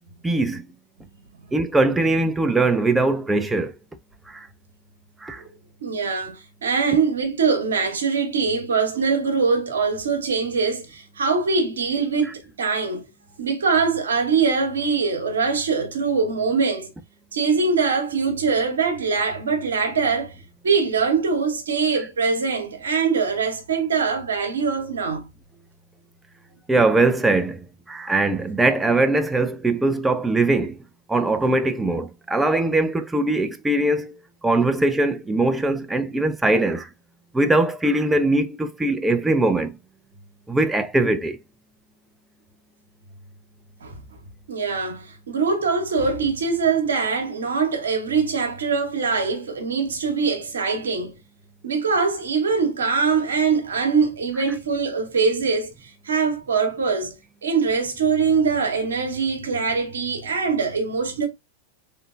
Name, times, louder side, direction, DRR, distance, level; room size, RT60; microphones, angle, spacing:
voice 1, 0.2-0.7 1.5-3.7 4.3-4.5 5.2-5.4 26.7-30.8 31.1-34.1 34.4-36.9 37.3-39.8 40.5-41.4, right 2 dB, 10° right, 0.4 m, -21 dB
voice 2, 5.8-13.0 13.4-16.9 17.3-20.4 20.6-25.3 43.8-44.0 44.5-51.1 51.6-57.2 57.4-61.3, right 5 dB, 70° right, 1.1 m, -23 dB
3.7 x 3.3 x 2.4 m
figure-of-eight pair, 90°, 0 cm